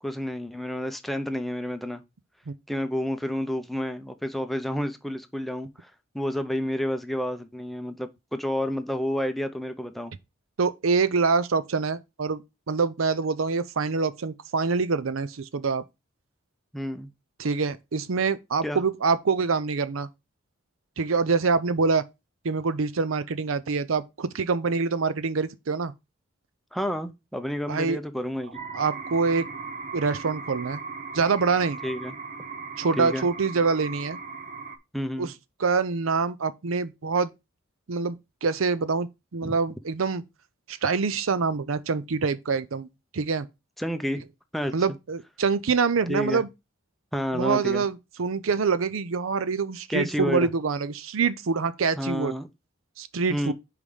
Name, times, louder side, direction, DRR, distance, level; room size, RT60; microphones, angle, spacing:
voice 1, 0.0-2.0 2.7-10.1 16.7-17.1 18.6-18.8 26.7-28.6 31.8-32.1 33.0-33.3 34.9-35.3 39.4-39.6 43.8-44.3 44.5-44.7 46.1-46.4 47.1-47.8 49.9-50.5 52.0-52.5 53.3-53.5, equal, ahead, 0.6 m, -30 dB
voice 2, 10.6-12.4 12.7-15.8 17.4-20.1 21.0-22.0 22.4-25.9 27.7-28.0 28.7-29.5 29.9-30.8 31.1-31.8 32.8-34.2 35.2-35.3 35.6-37.3 37.9-40.2 40.7-42.9 43.1-43.5 44.7-46.5 47.3-52.4 53.0-53.5, right 4 dB, 80° right, 0.6 m, -25 dB
sound 1, 28.5-34.8, right 4 dB, 40° right, 0.8 m, -38 dB
5.1 x 4.8 x 5.4 m
head